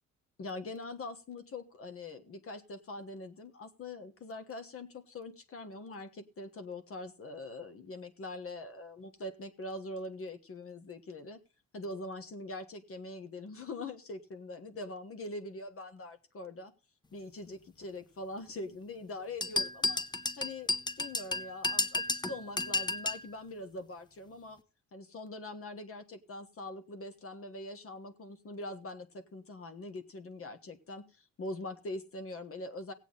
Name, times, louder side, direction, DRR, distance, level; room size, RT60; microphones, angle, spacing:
voice 1, 0.4-11.4 11.7-16.7 17.1-20.0 20.4-24.6 24.9-32.9, left 2 dB, 45° left, 8 dB, 1.3 m, -43 dB
sound 1, 19.4-23.3, left 2 dB, 15° left, 0.7 m, -32 dB
16.5 x 8.2 x 3.9 m, 0.32 s
cardioid pair, 90°, 30 cm